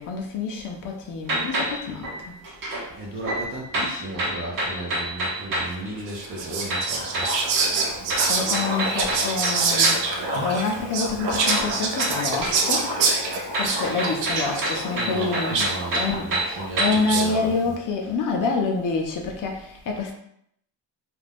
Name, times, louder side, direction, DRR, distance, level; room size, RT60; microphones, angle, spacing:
voice 1, 0.0-2.3 8.2-10.0 10.4-12.9 13.5-15.6 15.9-16.4 16.8-20.1, left 4 dB, 45° left, 2 dB, 0.5 m, -27 dB
sound 1, 1.3-2.9 3.2-5.8 6.7-10.2 11.5-12.7 13.0-17.2, right 1 dB, 50° right, 0.9 m, -29 dB
voice 2, 2.9-7.3 14.9-17.7, right 1 dB, 30° right, -5 dB, 0.5 m, -34 dB
Whispering, 6.1-17.4, right 3 dB, 90° right, 0.6 m, -26 dB
2.5 x 2.2 x 3.3 m, 0.71 s
wide cardioid pair, 180°, 44 cm